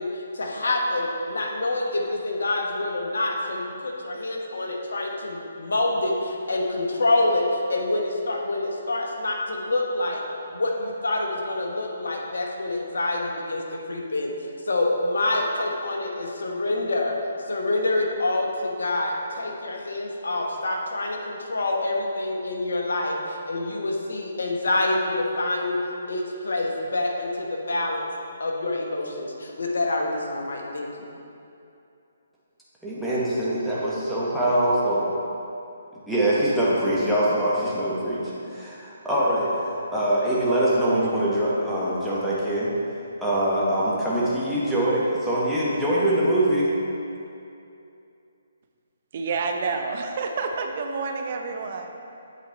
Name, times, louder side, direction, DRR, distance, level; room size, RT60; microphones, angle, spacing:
voice 1, 0.0-10.2 10.5-14.3 14.7-17.1 17.5-25.8 26.1-28.0 28.4-31.1, left 2 dB, 75° left, 0 dB, 1.1 m, -26 dB
voice 2, 32.8-35.0 36.1-42.7 43.2-46.7, right 1 dB, ahead, -10 dB, 1.2 m, -23 dB
voice 3, 49.1-51.9, right 4 dB, 45° right, 4 dB, 0.7 m, -29 dB
8.0 x 4.6 x 4.0 m, 2.6 s
figure-of-eight pair, 145°, 0 cm